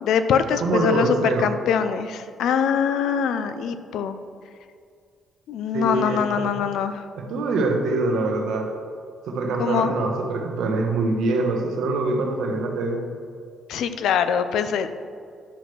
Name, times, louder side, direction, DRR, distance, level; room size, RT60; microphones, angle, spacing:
voice 1, 0.0-4.2 5.5-7.1 9.6-9.9 13.7-14.9, left 7 dB, 80° left, 11 dB, 0.5 m, -23 dB
voice 2, 0.6-1.5 5.7-6.4 7.2-8.7 9.3-13.0, right 3 dB, 80° right, 2 dB, 1.1 m, -24 dB
10.0 x 6.1 x 3.3 m, 2.3 s
cardioid pair, 90°, 0 cm